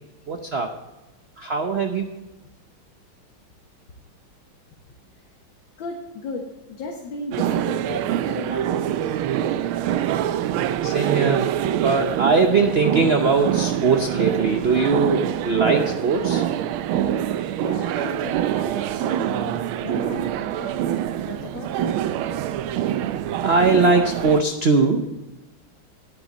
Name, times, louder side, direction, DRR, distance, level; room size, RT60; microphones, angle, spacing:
voice 1, 0.3-0.7 1.4-2.0 10.8-11.4 11.7-16.4 23.4-25.1, right 4 dB, 65° right, 5 dB, 0.6 m, -20 dB
voice 2, 5.8-8.9 17.1-22.0, left 3 dB, 70° left, 1 dB, 2.0 m, -36 dB
sound 1, 7.3-24.4, right 11 dB, 90° right, 1.5 m, -25 dB
11.0 x 9.9 x 4.1 m, 1.1 s
omnidirectional pair, 2.2 m